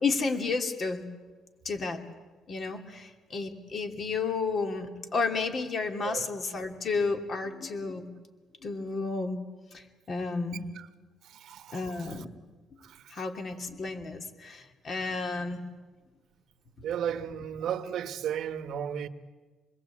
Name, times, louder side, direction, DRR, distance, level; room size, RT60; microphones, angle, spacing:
voice 1, 0.0-1.0 1.6-2.0 2.5-8.1 8.6-9.4 9.7-10.7 11.7-12.3 13.1-15.6, left 4 dB, 45° left, 2.8 m, -32 dB
voice 2, 11.2-11.8 12.8-13.0 16.8-19.1, right 9 dB, 70° right, 1.2 m, -34 dB
26.5 x 21.5 x 8.5 m
cardioid pair, 105°, 0 cm